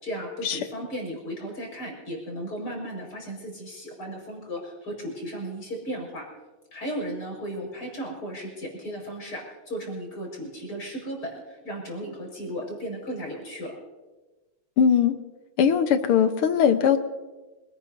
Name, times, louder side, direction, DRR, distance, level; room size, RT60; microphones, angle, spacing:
voice 1, 0.0-6.3 6.7-13.8, equal, 45° left, -1 dB, 5.8 m, -35 dB
voice 2, 14.8-15.2 15.6-17.0, left 7 dB, 85° left, 9 dB, 1.9 m, -20 dB
26.5 x 18.0 x 2.7 m, 1.2 s
omnidirectional pair, 2.4 m